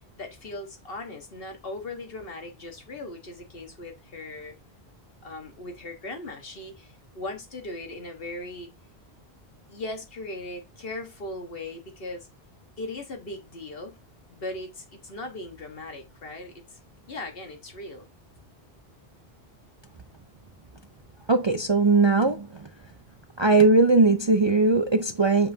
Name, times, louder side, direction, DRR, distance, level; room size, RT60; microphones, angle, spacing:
voice 1, 0.2-4.5 5.2-8.7 9.7-12.3 12.8-13.9 14.3-16.5 17.1-18.1, left 2 dB, 65° left, 1.6 m, -38 dB
voice 2, 21.3-22.7 23.4-25.5, right 3 dB, 40° right, 0.4 m, -20 dB
7.4 x 5.5 x 2.7 m
omnidirectional pair, 1.0 m